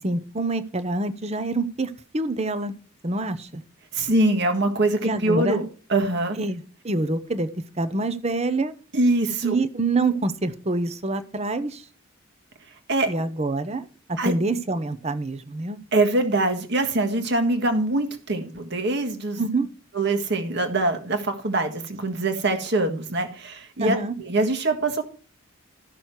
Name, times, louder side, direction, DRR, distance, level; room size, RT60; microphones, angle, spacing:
voice 1, 0.0-2.7 3.0-3.6 5.0-5.6 6.4-7.5 7.8-8.7 9.4-11.8 13.1-13.8 14.2-15.8 19.4-19.7 23.8-24.1, right 2 dB, 30° right, 11 dB, 0.8 m, -26 dB
voice 2, 3.9-6.4 8.9-9.6 12.9-13.1 14.2-14.3 15.9-19.4 19.9-25.0, right 2 dB, 55° right, 5 dB, 1.7 m, -23 dB
13.5 x 6.2 x 4.7 m, 0.37 s
head